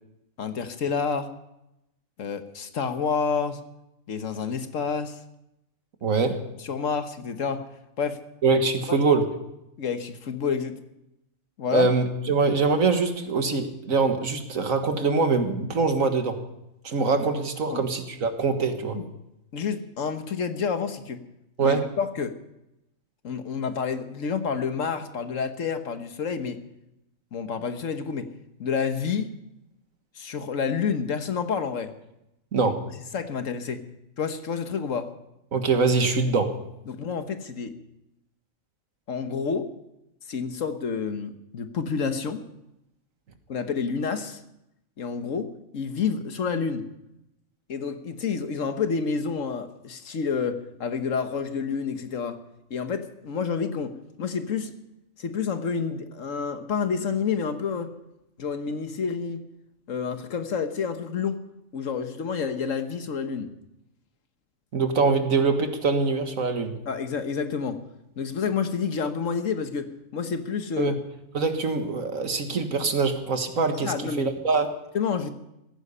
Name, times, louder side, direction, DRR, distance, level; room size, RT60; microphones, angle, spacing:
voice 1, 0.4-1.3 2.2-3.6 4.1-5.2 6.6-7.6 8.0-8.2 9.8-10.7 11.6-11.9 17.7-17.8 18.9-19.1 19.5-21.2 21.6-22.3 23.2-26.6 27.3-28.3 28.6-29.3 30.2-31.9 32.6-32.7 33.1-33.8 34.2-35.1 36.9-37.7 39.1-39.7 40.3-42.4 43.5-44.4 45.0-46.8 47.7-52.4 52.7-54.7 55.2-57.9 58.4-59.4 59.9-61.4 61.7-63.5 66.9-67.8 68.2-71.0 73.8-74.3 74.9-75.3, left 6 dB, 75° left, 8 dB, 1.6 m, -29 dB
voice 2, 6.0-6.4 8.4-9.3 11.7-16.4 16.8-19.0 21.6-21.9 32.5-32.8 35.5-36.6 64.7-66.8 70.8-70.9 71.3-74.7, right 4 dB, 80° right, 6 dB, 2.0 m, -23 dB
16.0 x 15.0 x 5.6 m, 0.87 s
omnidirectional pair, 1.4 m